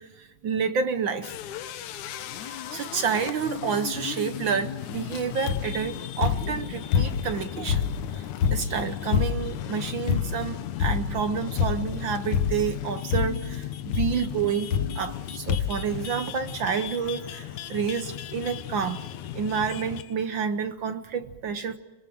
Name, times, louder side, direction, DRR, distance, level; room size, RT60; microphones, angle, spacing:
voice 1, 0.0-1.3 2.4-14.7 14.9-19.0 19.3-21.8, right 6 dB, 65° right, 10 dB, 1.2 m, -29 dB
sound 1, 1.2-20.2, left 11 dB, 80° left, 2.4 m, -36 dB
sound 2, 5.5-5.8 6.2-7.4 7.7-9.6 10.1-10.5 10.8-11.2 11.6-12.0 12.3-12.8 13.1-13.5 13.9-14.2 14.7-15.2 15.5-15.9 16.6-16.7 16.9-17.0, left 7 dB, 65° left, 1.3 m, -26 dB
25.5 x 22.5 x 7.8 m, 1.2 s
omnidirectional pair, 3.3 m